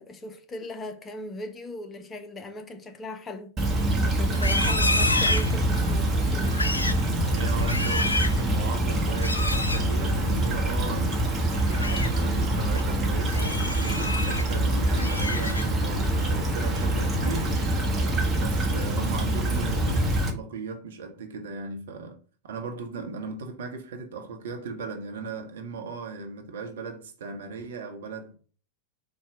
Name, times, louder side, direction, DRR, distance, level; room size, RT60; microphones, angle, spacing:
voice 1, 0.0-3.5 4.0-6.6, left 2 dB, 20° left, 0.6 m, -38 dB
Stream / Trickle dribble, 3.6-20.3, right 1 dB, 20° right, 1.0 m, -25 dB
Livestock farm animals working animals, 4.3-6.0 6.4-7.0 7.5-8.4 9.2-9.8 11.5-12.1 12.6-12.8 13.3-14.4 14.8-15.9 16.3-16.6 17.0-17.4, left 2 dB, 80° left, 0.4 m, -29 dB
voice 2, 6.8-17.7 18.4-28.4, right 4 dB, 60° right, 0.9 m, -37 dB
4.3 x 2.3 x 4.6 m
figure-of-eight pair, 90°, 0 cm